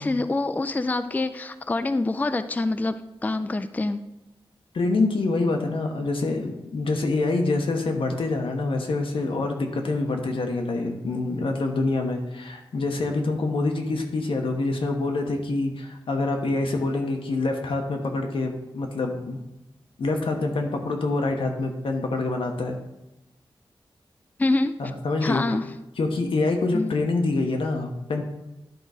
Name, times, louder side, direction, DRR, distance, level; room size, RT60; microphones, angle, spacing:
voice 1, 0.0-3.0 3.2-4.0 24.4-24.7 25.2-25.7 26.7-26.9, left 2 dB, 20° left, 10 dB, 0.3 m, -25 dB
voice 2, 4.7-19.4 20.0-22.8 24.8-25.4 26.0-28.2, left 3 dB, 85° left, 3 dB, 1.0 m, -26 dB
10.5 x 3.9 x 4.9 m, 0.96 s
wide cardioid pair, 80°, 9 cm